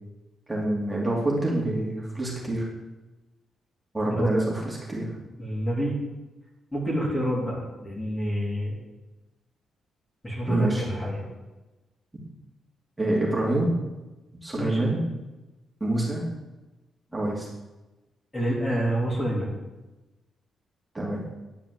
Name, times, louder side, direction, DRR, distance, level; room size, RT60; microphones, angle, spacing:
voice 1, 0.5-2.7 3.9-5.1 10.5-10.8 13.0-13.7 14.4-15.0 15.8-16.2 17.1-17.5 20.9-21.3, right 1 dB, 10° right, -4 dB, 2.5 m, -26 dB
voice 2, 5.4-6.0 6.7-8.8 10.2-11.3 14.6-14.9 18.3-19.5, right 1 dB, 15° left, -3 dB, 2.7 m, -28 dB
10.0 x 4.8 x 8.0 m, 1.1 s
cardioid pair, 130°, 0 cm